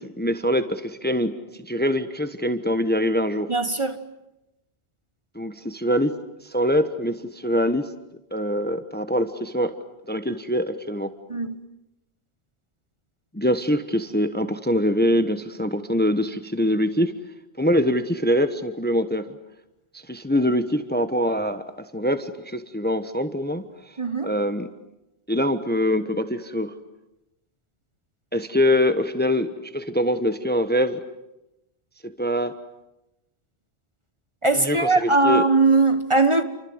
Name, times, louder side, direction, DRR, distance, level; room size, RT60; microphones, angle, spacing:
voice 1, 0.0-1.3 1.6-3.5 5.3-6.1 6.4-7.9 8.3-9.8 10.1-11.1 13.3-17.1 17.6-19.3 20.1-21.6 21.9-23.6 24.2-24.7 25.3-26.7 28.3-31.0 32.0-32.5 34.5-35.4, equal, 10° left, 1.1 m, -23 dB
voice 2, 3.5-4.0 11.3-11.6 24.0-24.3 34.4-36.4, right 3 dB, 25° right, 1.4 m, -20 dB
29.5 x 25.0 x 8.1 m
omnidirectional pair, 1.1 m